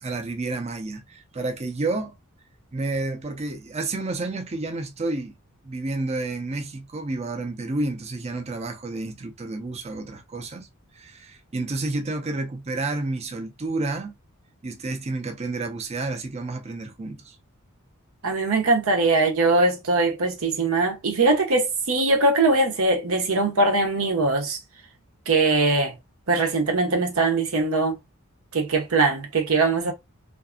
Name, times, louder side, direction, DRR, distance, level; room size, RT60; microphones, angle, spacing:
voice 1, 0.0-2.1 2.7-5.4 5.6-10.7 10.9-14.1 14.6-17.4, right 2 dB, 30° right, 0.5 m, -30 dB
voice 2, 18.2-24.6 25.3-26.0 26.3-28.0 28.5-29.9, right 3 dB, 70° right, 0.8 m, -21 dB
2.6 x 2.4 x 2.3 m
head